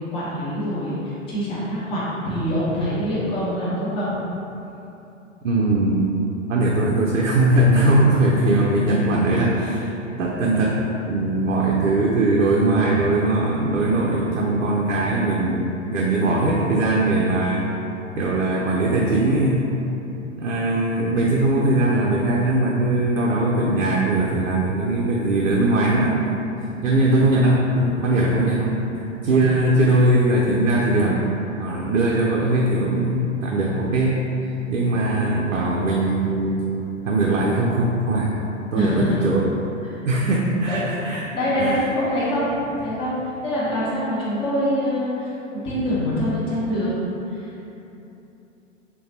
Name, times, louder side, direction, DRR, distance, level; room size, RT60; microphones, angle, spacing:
voice 1, 0.0-4.1 29.3-29.4 38.7-39.2 40.7-40.8 41.3-43.1 43.4-46.9 47.3-47.6, equal, 15° left, -9 dB, 0.7 m, -24 dB
voice 2, 5.4-6.1 6.5-9.9 10.2-15.7 15.9-17.9 18.2-19.7 20.4-26.3 26.8-31.2 31.6-34.3 34.7-36.6 37.0-38.3 38.7-39.5 40.0-41.2 41.6-41.8, right 2 dB, 75° right, -4 dB, 0.5 m, -20 dB
3.7 x 2.2 x 2.8 m, 2.9 s
figure-of-eight pair, 100°, 39 cm